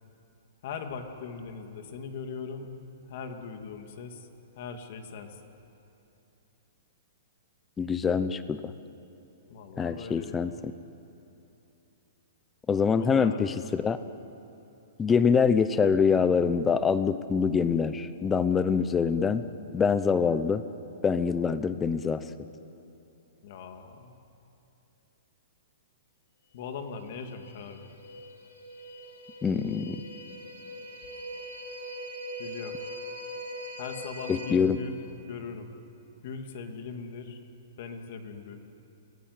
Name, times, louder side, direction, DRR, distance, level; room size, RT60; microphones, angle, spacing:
voice 1, 0.6-2.7 3.0-4.3 4.6-5.4 9.5-10.5 12.9-13.5 23.4-24.2 26.5-28.0 32.4-32.8 33.8-35.0 35.3-35.7 36.2-37.4 37.8-38.6, left 5 dB, 40° left, 5 dB, 2.4 m, -40 dB
voice 2, 7.8-8.7 9.8-10.5 12.7-14.0 15.0-19.4 19.7-20.6 21.0-22.2 29.4-30.0 34.3-34.8, left 6 dB, 10° left, 13 dB, 0.7 m, -25 dB
sound 1, 27.0-34.5, equal, 85° left, 3.4 m, -41 dB
28.0 x 20.0 x 9.7 m, 2.9 s
hypercardioid pair, 175°, 0 cm